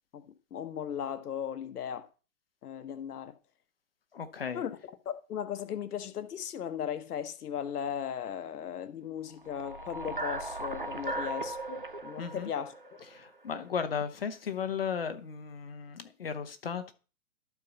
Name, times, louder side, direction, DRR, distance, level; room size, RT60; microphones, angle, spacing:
voice 1, 0.5-2.1 2.6-3.4 4.5-4.7 5.0-12.7, left 9 dB, 70° left, 1.3 m, -37 dB
voice 2, 4.1-4.6 12.2-12.5 13.1-16.9, left 7 dB, 40° left, 1.0 m, -35 dB
sound 1, 9.4-13.7, right 2 dB, 35° right, 0.4 m, -38 dB
12.0 x 4.7 x 7.0 m
hypercardioid pair, 175°, 47 cm